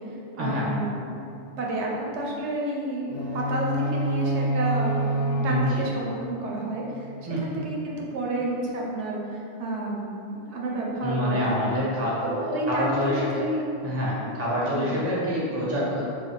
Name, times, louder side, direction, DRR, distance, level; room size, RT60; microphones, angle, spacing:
voice 1, 0.4-1.2 1.6-7.1 7.4-11.4 11.7-11.8 12.2-13.8 14.7-15.0, right 1 dB, 70° right, -3 dB, 0.9 m, -30 dB
sound 1, 3.1-7.1, right 2 dB, 55° left, 0.9 m, -28 dB
voice 2, 7.3-7.6 11.0-12.2 12.7-13.4 13.8-16.1, equal, 15° right, -6 dB, 0.5 m, -26 dB
3.3 x 2.2 x 4.1 m, 2.7 s
omnidirectional pair, 1.2 m